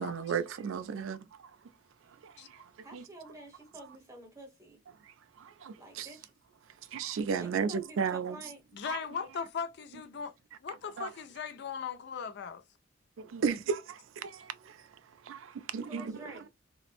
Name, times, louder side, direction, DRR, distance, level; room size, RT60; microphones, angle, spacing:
voice 1, 0.0-1.5 2.2-3.0 5.1-6.1 6.9-8.4 8.9-9.0 11.0-11.1 13.2-14.8 15.2-16.4, right 6 dB, 75° right, 0.4 m, -35 dB
voice 2, 2.8-4.8 5.8-6.3 7.4-8.6 15.9-16.5, right 1 dB, 15° right, 0.9 m, -49 dB
voice 3, 8.7-10.3 10.6-12.6, left 6 dB, 55° left, 0.4 m, -38 dB
3.0 x 2.0 x 2.4 m
head